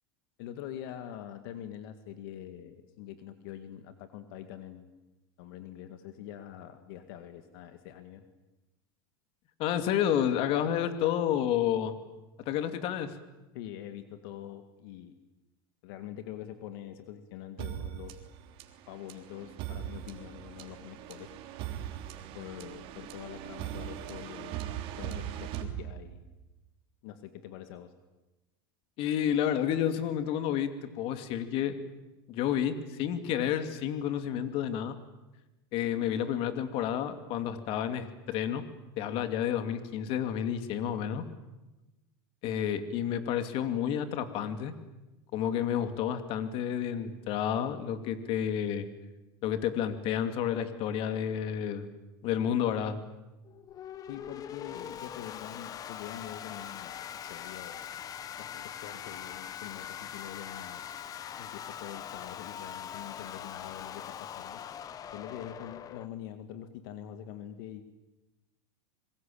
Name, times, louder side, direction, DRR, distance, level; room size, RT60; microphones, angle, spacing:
voice 1, 0.4-4.9 5.4-8.2 13.5-15.2 15.8-18.2 18.9-21.3 22.3-26.3 27.0-27.9 54.1-57.9 58.4-60.9 61.4-64.8 65.1-67.8, left 11 dB, 65° left, 8 dB, 2.2 m, -45 dB
voice 2, 9.6-11.9 12.5-13.1 29.0-31.8 32.3-35.0 35.7-38.6 39.0-41.2 42.4-44.7 45.3-48.9 49.4-51.9 52.2-53.0, left 9 dB, 45° left, 9 dB, 2.6 m, -30 dB
sound 1, 17.6-26.4, right 11 dB, 50° right, 3.4 m, -40 dB
sound 2, 53.5-66.1, left 9 dB, 30° left, 1.2 m, -42 dB
26.5 x 23.0 x 8.7 m, 1.1 s
supercardioid pair, 135°, 12 cm